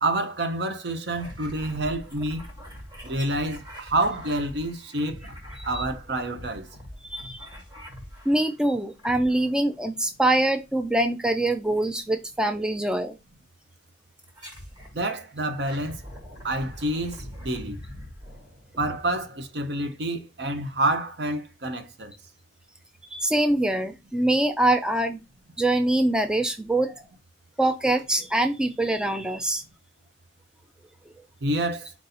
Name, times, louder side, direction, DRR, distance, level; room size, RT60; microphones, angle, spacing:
voice 1, 0.0-2.5 3.0-5.2 5.6-6.7 14.9-16.0 16.4-17.8 18.8-22.1 31.4-31.9, right 1 dB, 65° right, 0.7 m, -28 dB
sound 1, 1.1-8.6 9.0-9.8 11.5-11.9 12.9-13.0 14.2-15.0 15.4-19.8, equal, 25° right, 1.3 m, -43 dB
voice 2, 7.0-7.5 8.3-13.2 23.1-25.2 25.6-26.9 27.6-29.6, right 1 dB, 5° right, 0.3 m, -24 dB
4.5 x 2.6 x 4.1 m
head